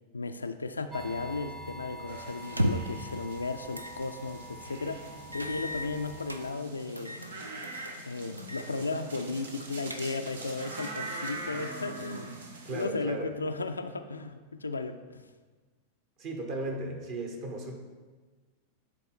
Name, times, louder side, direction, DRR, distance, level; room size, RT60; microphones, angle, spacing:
voice 1, 0.1-7.2 8.0-12.4 12.7-15.2, left 3 dB, 80° left, 8 dB, 0.4 m, -35 dB
sound 1, 0.9-6.5, equal, 5° right, 0.6 m, -46 dB
sound 2, 2.1-12.9, right 2 dB, 70° right, 0.9 m, -43 dB
sound 3, 2.4-3.0 3.7-4.0 4.4-4.5 5.3-6.4 7.0-7.3 7.6-8.0 8.4-8.7 9.0-9.1 9.6-10.4, equal, 85° right, 0.5 m, -34 dB
voice 2, 12.7-13.3 16.2-17.7, right 2 dB, 45° right, 2 dB, 1.2 m, -35 dB
10.0 x 3.8 x 4.4 m, 1.4 s
figure-of-eight pair, 90°, 0 cm